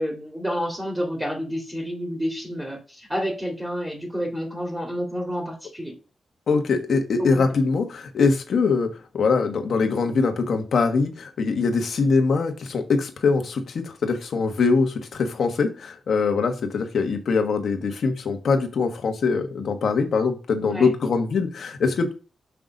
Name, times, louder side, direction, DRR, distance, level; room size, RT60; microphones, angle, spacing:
voice 1, 0.0-5.9 7.3-7.4 20.6-20.9, equal, 10° right, -1 dB, 2.2 m, -29 dB
voice 2, 6.5-8.9 9.1-22.1, left 4 dB, 75° left, 6 dB, 1.2 m, -23 dB
5.8 x 3.8 x 5.3 m, 0.34 s
cardioid pair, 70°, 0 cm